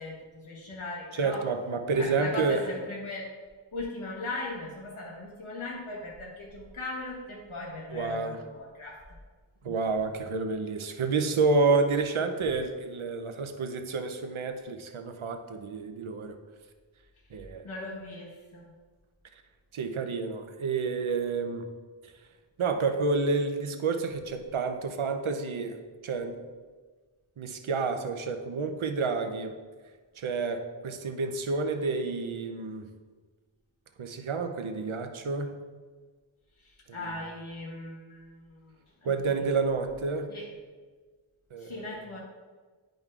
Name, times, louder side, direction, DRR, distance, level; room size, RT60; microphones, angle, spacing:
voice 1, 0.0-1.5 1.9-3.3 3.7-9.0 9.6-9.8 17.6-18.7 36.6-39.5 40.3-40.5 41.6-42.2, left 2 dB, 85° left, -3 dB, 1.4 m, -39 dB
voice 2, 1.2-2.6 7.9-8.4 9.6-16.4 17.3-17.6 19.7-21.7 22.6-25.8 26.0-26.4 27.4-29.5 30.2-32.9 34.0-35.5 36.9-37.0 39.0-40.3 41.5-42.0, right 4 dB, 85° right, 7 dB, 0.7 m, -29 dB
10.5 x 5.2 x 2.4 m, 1.4 s
wide cardioid pair, 80°, 48 cm